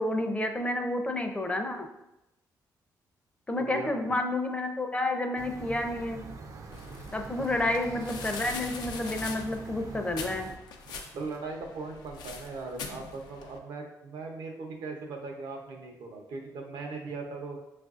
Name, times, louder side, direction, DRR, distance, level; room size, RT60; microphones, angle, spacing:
voice 1, 0.0-1.9 3.5-6.2 7.1-10.5, left 1 dB, 15° left, 5 dB, 0.5 m, -30 dB
voice 2, 3.6-3.9 7.4-7.5 10.9-17.6, right 3 dB, 80° right, 2 dB, 0.7 m, -39 dB
sound 1, 5.4-10.6, right 3 dB, 50° right, 0.4 m, -43 dB
sound 2, 6.7-13.6, left 4 dB, 90° left, 0.5 m, -43 dB
5.9 x 2.5 x 2.4 m, 0.92 s
cardioid pair, 100°, 7 cm